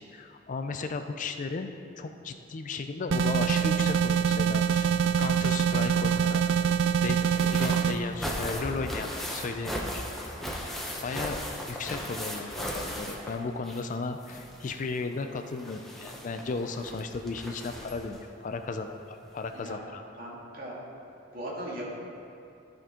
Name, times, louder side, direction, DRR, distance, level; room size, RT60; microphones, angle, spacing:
voice 1, 0.1-6.7 7.0-7.2 7.5-10.1 10.4-10.7 11.0-11.4 11.7-20.1, left 4 dB, 40° left, 7 dB, 0.4 m, -35 dB
sound 1, 3.1-7.9, right 7 dB, 80° right, 0.4 m, -25 dB
sound 2, 7.2-13.9 14.2-18.2 19.2-19.3 19.7-19.8, equal, ahead, 0.8 m, -37 dB
voice 2, 20.2-20.7 21.3-21.9, right 1 dB, 50° right, -5 dB, 2.1 m, -38 dB
14.0 x 5.2 x 3.7 m, 2.6 s
head